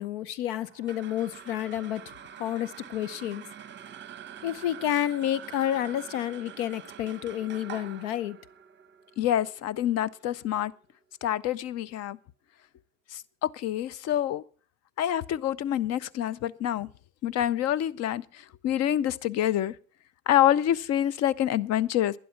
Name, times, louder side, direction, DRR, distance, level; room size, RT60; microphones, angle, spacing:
voice 1, 0.0-2.0 2.4-3.4 4.4-8.4, left 11 dB, 70° left, 0.8 m, -30 dB
sound 1, 0.6-11.2, right 9 dB, 25° right, 0.9 m, -46 dB
voice 2, 9.2-10.7 11.2-12.2 13.1-14.4 15.0-16.9 17.2-19.8 20.3-22.1, left 11 dB, 40° left, 0.6 m, -27 dB
11.5 x 10.5 x 5.7 m
supercardioid pair, 115°, 42 cm